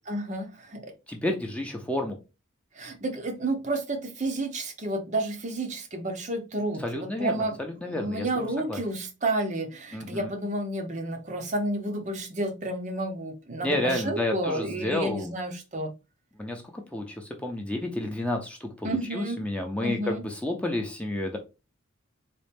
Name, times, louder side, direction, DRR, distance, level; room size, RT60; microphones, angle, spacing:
voice 1, 0.1-0.9 2.8-7.6 7.9-15.9 18.8-19.4 19.8-20.2, right 1 dB, 35° right, 5 dB, 0.7 m, -31 dB
voice 2, 1.1-2.2 6.8-8.8 9.9-10.3 13.6-15.3 16.4-21.4, left 1 dB, 5° left, 2 dB, 0.6 m, -31 dB
4.1 x 2.4 x 3.4 m, 0.27 s
head